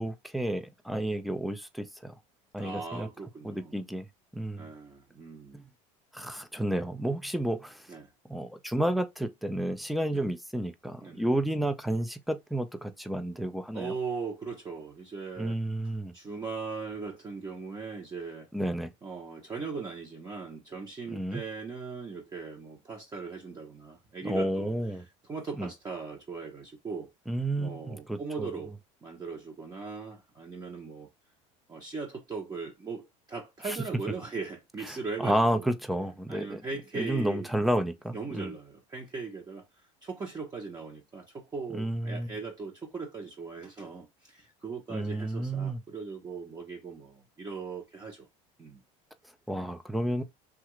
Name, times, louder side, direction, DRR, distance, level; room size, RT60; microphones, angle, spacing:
voice 1, 0.0-2.2 2.5-3.1 3.4-4.1 4.3-4.7 5.5-5.7 6.1-7.9 8.3-13.9 15.4-16.1 18.5-18.9 21.1-21.4 24.2-25.0 25.6-25.7 27.3-28.6 33.7-33.8 35.2-36.6 36.9-38.5 41.7-42.3 44.9-45.8 49.5-50.2, right 1 dB, ahead, 0.5 m, -31 dB
voice 2, 2.6-3.7 4.6-5.6 7.9-8.1 10.1-10.3 11.0-11.3 13.7-18.5 19.0-24.7 25.3-27.1 27.6-28.7 29.0-31.1 31.7-35.7 36.3-37.5 38.1-39.7 40.0-48.3 48.6-48.8, right 4 dB, 20° right, 0.9 m, -39 dB
2.9 x 2.4 x 3.0 m
supercardioid pair, 105°, 17 cm